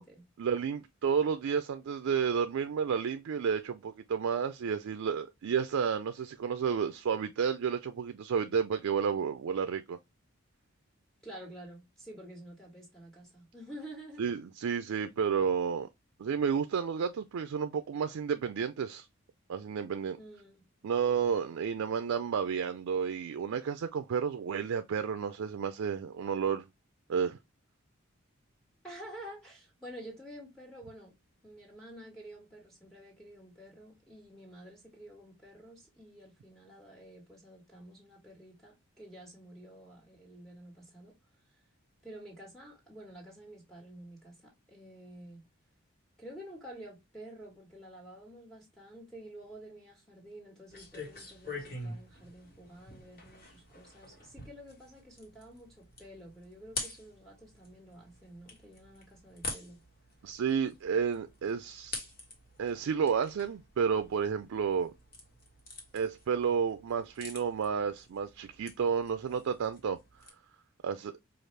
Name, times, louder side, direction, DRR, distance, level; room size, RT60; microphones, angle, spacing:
voice 1, 0.4-10.0 14.2-15.9 16.2-19.1 19.5-20.2 20.8-26.7 27.1-27.4 60.2-62.1 62.6-64.9 65.9-70.0 70.8-71.1, right 6 dB, 85° right, 0.4 m, -31 dB
voice 2, 11.2-14.2 20.2-20.7 28.8-31.1 31.4-41.2 42.0-45.4 46.2-59.8, right 1 dB, ahead, 1.6 m, -50 dB
sound 1, 50.7-70.3, left 2 dB, 45° left, 1.2 m, -47 dB
4.9 x 2.4 x 3.2 m
head